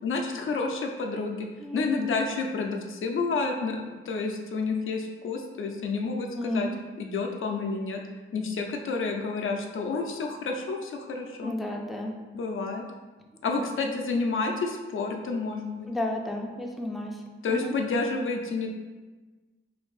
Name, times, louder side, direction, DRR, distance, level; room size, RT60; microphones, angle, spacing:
voice 1, 0.0-1.5 1.7-6.7 7.0-8.0 8.3-11.5 12.3-12.8 13.4-15.9 17.4-18.7, left 4 dB, 75° left, 3 dB, 0.5 m, -30 dB
voice 2, 6.3-6.7 11.4-12.1 13.6-13.9 15.9-17.2 17.5-17.7, left 1 dB, ahead, 1 dB, 0.3 m, -32 dB
3.4 x 2.6 x 3.9 m, 1.3 s
wide cardioid pair, 140°, 21 cm